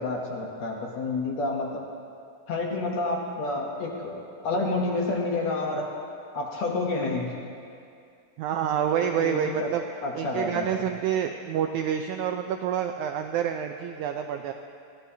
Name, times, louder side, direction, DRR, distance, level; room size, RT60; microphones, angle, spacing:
voice 1, 0.0-1.8 2.5-5.9 6.3-7.3 9.0-9.7 10.0-10.8, left 3 dB, 65° left, -1 dB, 1.8 m, -29 dB
voice 2, 8.4-9.8 10.1-14.5, right 9 dB, 85° right, 5 dB, 1.7 m, -28 dB
21.0 x 15.0 x 2.8 m, 2.5 s
omnidirectional pair, 4.0 m